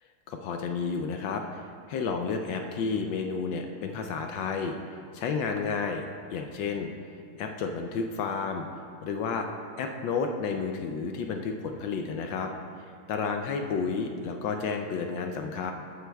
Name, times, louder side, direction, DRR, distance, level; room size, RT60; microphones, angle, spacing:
voice 1, 0.3-6.0 6.3-6.9 7.4-8.7 9.0-9.5 9.8-12.5 12.8-15.7, left 5 dB, 75° left, 4 dB, 1.1 m, -31 dB
14.0 x 8.0 x 2.3 m, 2.6 s
omnidirectional pair, 2.4 m